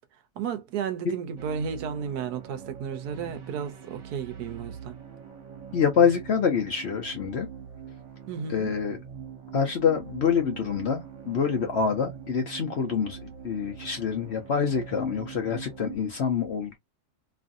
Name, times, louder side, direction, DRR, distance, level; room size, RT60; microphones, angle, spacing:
voice 1, 0.4-5.0 8.3-8.7, right 7 dB, 80° right, 1.2 m, -33 dB
sound 1, 1.4-16.0, right 8 dB, 50° right, 1.3 m, -43 dB
voice 2, 5.7-7.5 8.5-9.0 9.5-16.8, left 6 dB, 55° left, 0.8 m, -26 dB
3.0 x 2.5 x 2.5 m
omnidirectional pair, 1.7 m